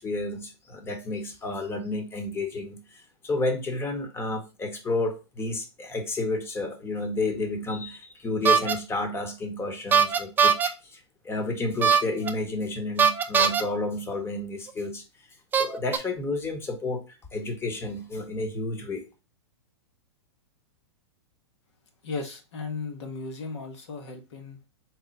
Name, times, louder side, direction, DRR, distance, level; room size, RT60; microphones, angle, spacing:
voice 1, 0.0-11.0 11.2-15.0 15.6-17.0 17.3-19.0, left 2 dB, 15° left, 0.9 m, -31 dB
sound 1, 8.5-8.7 9.9-10.7 11.8-12.3 13.0-13.6 14.7-14.8 15.5-16.0, right 6 dB, 15° right, 0.4 m, -20 dB
voice 2, 22.0-24.6, left 4 dB, 70° left, 1.3 m, -36 dB
4.3 x 2.2 x 3.9 m
hypercardioid pair, 125°, 15 cm